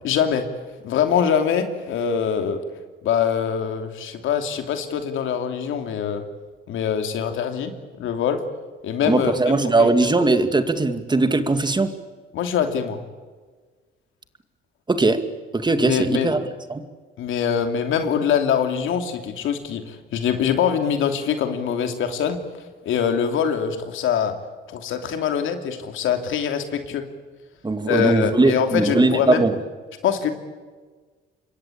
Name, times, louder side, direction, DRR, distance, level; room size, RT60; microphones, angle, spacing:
voice 1, 0.0-0.4 0.8-2.6 3.0-6.2 6.7-8.4 8.8-9.3 9.8-9.9 12.3-13.0 15.8-16.4 17.2-22.4 22.8-24.4 24.7-27.0 27.9-29.5 30.0-30.3, left 8 dB, 80° left, 6 dB, 2.9 m, -23 dB
voice 2, 9.0-11.9 14.9-15.2 15.5-16.4 16.7-16.8 27.6-29.6, right 3 dB, 20° right, 8 dB, 2.3 m, -19 dB
26.5 x 22.5 x 8.7 m, 1.4 s
cardioid pair, 90°, 20 cm